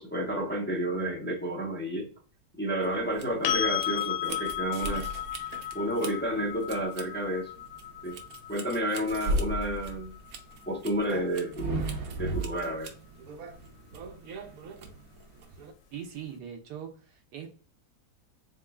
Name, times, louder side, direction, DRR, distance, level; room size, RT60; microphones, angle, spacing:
voice 1, 0.0-2.1 2.6-5.1 5.7-7.5 8.0-8.2 8.5-10.1 10.7-12.9, right 1 dB, 15° left, -3 dB, 0.4 m, -31 dB
sound 1, 2.8-15.7, right 2 dB, 65° right, 1.1 m, -37 dB
sound 2, 3.4-11.3 14.1-14.2, left 12 dB, 80° left, 1.2 m, -35 dB
voice 2, 15.9-17.5, right 9 dB, 85° right, 4 dB, 1.5 m, -41 dB
3.8 x 3.7 x 2.2 m, 0.39 s
omnidirectional pair, 1.8 m